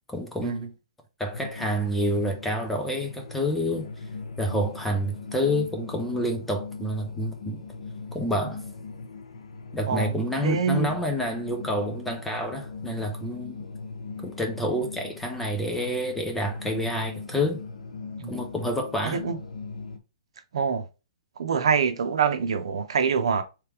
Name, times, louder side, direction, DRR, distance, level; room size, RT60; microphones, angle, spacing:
voice 1, 0.1-0.7 1.2-3.9 4.4-7.6 8.1-8.6 9.7-13.6 14.2-17.6 18.3-19.2, equal, 5° left, 0.4 m, -28 dB
sound 1, 1.3-20.0, left 4 dB, 85° left, 1.0 m, -40 dB
voice 2, 10.4-10.9 18.2-18.3 19.0-19.4 20.5-20.9 21.4-23.4, right 6 dB, 60° right, 0.8 m, -25 dB
3.4 x 3.2 x 4.7 m
hypercardioid pair, 180°, 3 cm